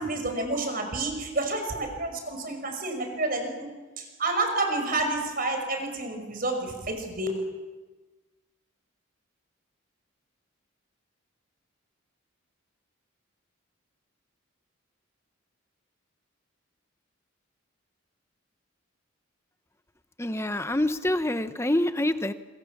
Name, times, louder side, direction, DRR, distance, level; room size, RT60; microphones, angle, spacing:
voice 1, 0.0-3.7 4.0-7.3, right 2 dB, 45° right, 5 dB, 5.5 m, -29 dB
voice 2, 20.2-22.3, left 1 dB, 10° left, 11 dB, 0.8 m, -26 dB
27.0 x 23.5 x 7.3 m, 1.2 s
head